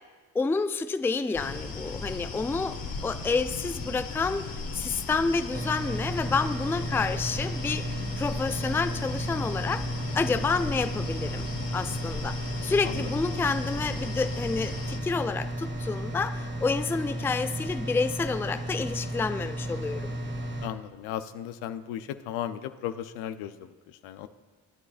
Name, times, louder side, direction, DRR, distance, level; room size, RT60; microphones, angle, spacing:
voice 1, 0.3-9.8 10.1-11.5 11.7-20.1, left 4 dB, 5° left, 12 dB, 0.4 m, -29 dB
sound 1, 1.3-15.0, left 3 dB, 45° left, 1.8 m, -37 dB
sound 2, 5.5-20.7, right 1 dB, 25° right, 1.5 m, -34 dB
voice 2, 20.6-24.3, left 11 dB, 70° left, 11 dB, 0.8 m, -36 dB
21.5 x 9.8 x 2.5 m, 1.4 s
hypercardioid pair, 45°, 48 cm